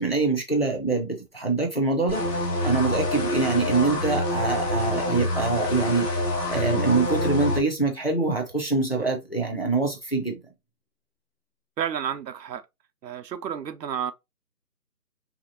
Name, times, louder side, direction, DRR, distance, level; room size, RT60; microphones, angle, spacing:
voice 1, 0.0-6.2 6.5-10.4, right 3 dB, 40° left, 0.5 m, -25 dB
sound 1, 2.1-7.6, left 1 dB, 70° left, 1.1 m, -26 dB
voice 2, 11.8-12.6 13.0-14.1, right 8 dB, 85° right, 0.6 m, -31 dB
2.8 x 2.6 x 2.6 m
figure-of-eight pair, 170°, 49 cm